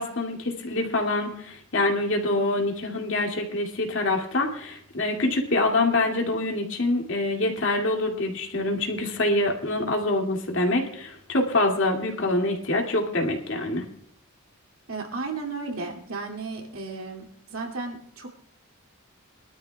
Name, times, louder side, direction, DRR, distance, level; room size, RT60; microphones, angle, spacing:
voice 1, 0.0-13.8, left 2 dB, 55° left, 1 dB, 2.5 m, -25 dB
voice 2, 14.9-17.2 17.5-18.4, right 3 dB, 70° right, 1 dB, 2.6 m, -34 dB
23.5 x 12.5 x 2.4 m, 0.64 s
head